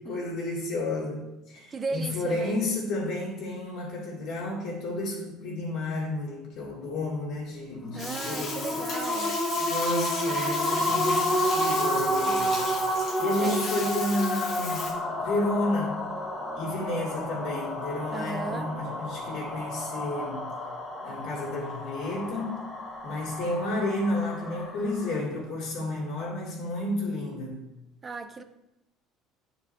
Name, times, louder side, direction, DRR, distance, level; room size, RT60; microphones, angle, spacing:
voice 1, 0.0-8.8 9.6-12.6 13.2-14.9 15.2-16.1 16.5-20.4 21.0-22.6 23.0-27.6, left 2 dB, 65° left, 2.5 m, -31 dB
voice 2, 1.7-2.6 7.9-9.4 13.4-13.7 18.1-18.7 28.0-28.4, right 4 dB, 30° right, 0.5 m, -36 dB
sound 1, 7.9-25.2, equal, 25° left, 1.3 m, -30 dB
Bathtub (filling or washing), 8.0-14.9, left 3 dB, 50° left, 1.9 m, -36 dB
9.4 x 4.6 x 2.7 m
supercardioid pair, 95°, 0 cm